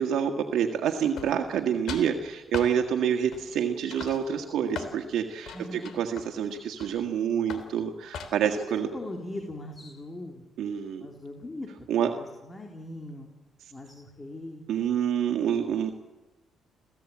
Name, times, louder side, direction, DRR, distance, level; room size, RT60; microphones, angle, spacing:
voice 1, 0.0-8.9 10.6-11.1 11.9-12.1 14.7-15.9, right 8 dB, 80° right, 4 dB, 1.7 m, -27 dB
sound 1, 1.1-1.6 1.9-2.1 2.5-2.7 3.3-3.6 3.9-5.0 5.4-7.1 7.5-7.7 8.1-8.6, left 6 dB, 75° left, 3.4 m, -39 dB
voice 2, 5.5-5.9 8.6-10.4 11.0-11.9 12.1-13.3 13.7-14.7, left 1 dB, 20° left, 1 dB, 3.6 m, -40 dB
29.0 x 15.5 x 8.7 m, 1.1 s
cardioid pair, 90°, 0 cm